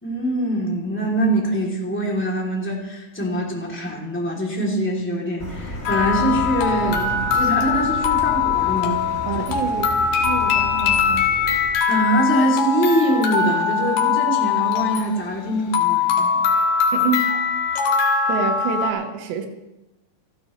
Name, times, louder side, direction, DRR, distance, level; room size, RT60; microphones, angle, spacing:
voice 1, 0.0-9.0 9.3-9.4 11.9-16.4, right 1 dB, 5° left, -3 dB, 2.3 m, -23 dB
Car, 5.4-11.7, left 1 dB, 20° left, 1.9 m, -33 dB
sound 1, 5.9-18.9, left 6 dB, 75° left, 3.8 m, -21 dB
voice 2, 9.3-11.3 16.9-17.3 18.3-19.5, right 5 dB, 90° right, 5 dB, 3.6 m, -27 dB
29.0 x 11.5 x 3.3 m, 0.99 s
omnidirectional pair, 4.9 m